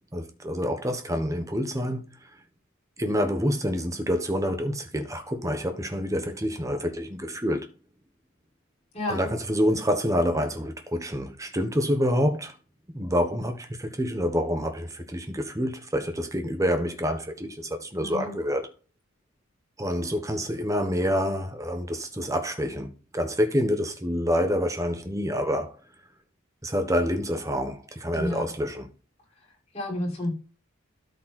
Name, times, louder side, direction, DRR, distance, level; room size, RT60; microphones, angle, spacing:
voice 1, 0.1-2.0 3.0-7.7 9.1-12.5 12.9-18.7 19.8-25.8 26.6-28.9, equal, 15° right, 1.2 m, -27 dB
voice 2, 8.9-9.3 18.0-18.3 28.1-28.5 29.7-30.3, left 1 dB, 30° left, 5.7 m, -30 dB
13.0 x 5.3 x 4.3 m
head